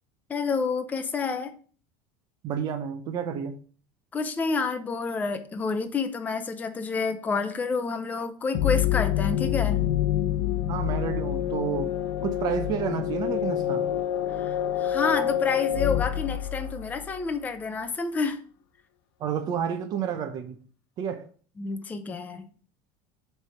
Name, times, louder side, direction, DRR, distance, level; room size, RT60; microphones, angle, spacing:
voice 1, 0.3-1.5 4.1-9.8 14.3-18.4 21.6-22.5, left 4 dB, 15° left, 0.6 m, -29 dB
voice 2, 2.4-3.6 10.7-11.9 12.2-13.9 19.2-20.6 21.0-21.3, right 8 dB, 35° right, 0.8 m, -30 dB
sound 1, 8.5-17.2, left 11 dB, 65° left, 0.7 m, -27 dB
7.3 x 3.4 x 5.9 m
cardioid pair, 160°, 11 cm